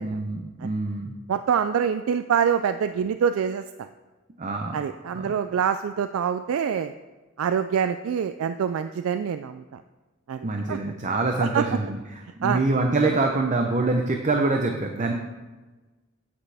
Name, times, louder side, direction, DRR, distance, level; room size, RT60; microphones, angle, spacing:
voice 1, 0.0-1.2 4.4-4.8 5.1-5.3 10.4-15.1, right 3 dB, 35° right, 3 dB, 0.6 m, -25 dB
voice 2, 1.3-3.9 4.7-6.9 7.4-9.8 10.3-10.8 11.4-11.6 12.4-12.6, right 7 dB, 70° right, 10 dB, 0.3 m, -25 dB
9.7 x 8.6 x 3.4 m, 1.2 s
head